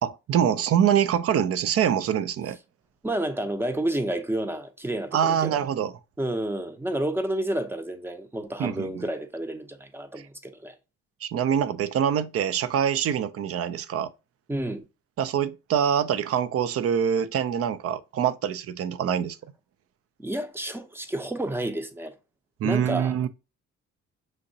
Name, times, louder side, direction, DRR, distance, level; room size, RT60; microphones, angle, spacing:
voice 1, 0.0-2.6 5.1-5.9 8.6-9.0 11.2-14.1 15.2-19.4 22.6-23.3, right 8 dB, 50° right, 0.5 m, -25 dB
voice 2, 3.0-5.6 6.2-10.7 14.5-14.8 20.2-22.1 22.6-23.1, right 1 dB, 10° right, 0.6 m, -30 dB
6.3 x 2.8 x 2.7 m
cardioid pair, 90°, 30 cm